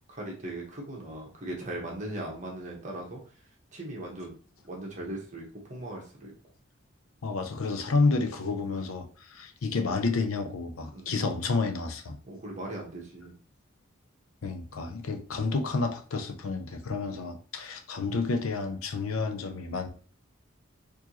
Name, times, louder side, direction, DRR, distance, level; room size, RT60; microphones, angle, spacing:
voice 1, 0.1-3.2 3.7-4.4 4.6-6.3 10.9-11.1 12.2-13.3, right 1 dB, 35° right, -1 dB, 1.1 m, -39 dB
voice 2, 7.2-12.2 14.4-19.9, left 3 dB, 80° left, 6 dB, 0.6 m, -30 dB
4.5 x 2.8 x 2.9 m, 0.42 s
head